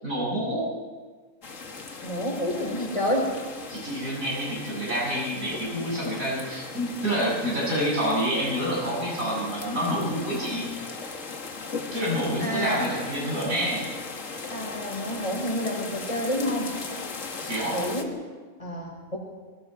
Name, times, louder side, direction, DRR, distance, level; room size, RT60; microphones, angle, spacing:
voice 1, 0.0-0.7 3.7-10.7 11.9-13.8 17.4-17.8, equal, 85° right, -4 dB, 7.4 m, -28 dB
sound 1, 1.4-18.0, left 4 dB, 65° left, 2.0 m, -38 dB
voice 2, 2.0-3.3 12.4-12.9 14.5-16.7 17.7-18.1 18.6-19.2, equal, 25° left, -1 dB, 5.0 m, -29 dB
29.0 x 20.5 x 4.8 m, 1.5 s
omnidirectional pair, 1.4 m